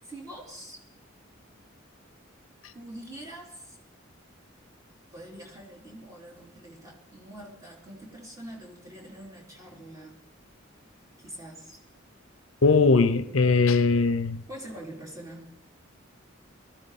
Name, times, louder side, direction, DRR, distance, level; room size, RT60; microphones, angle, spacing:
voice 1, 0.0-0.8 2.7-3.8 5.1-10.2 11.2-11.8 14.5-15.5, right 1 dB, 15° right, 3.8 m, -44 dB
voice 2, 12.6-14.4, left 4 dB, 85° left, 0.8 m, -20 dB
19.5 x 14.0 x 4.2 m
head